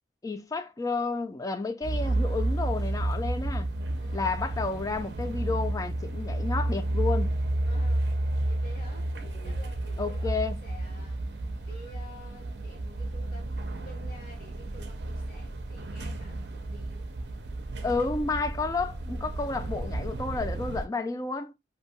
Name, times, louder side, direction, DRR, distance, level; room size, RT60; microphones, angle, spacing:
voice 1, 0.2-3.7 4.1-7.3 9.3-9.6 10.0-10.6 17.8-21.5, left 3 dB, 20° left, 0.3 m, -31 dB
sound 1, 1.8-20.9, right 1 dB, 70° right, 0.5 m, -31 dB
voice 2, 3.9-4.5 7.6-17.0, equal, 55° left, 1.5 m, -51 dB
2.7 x 2.2 x 2.7 m
head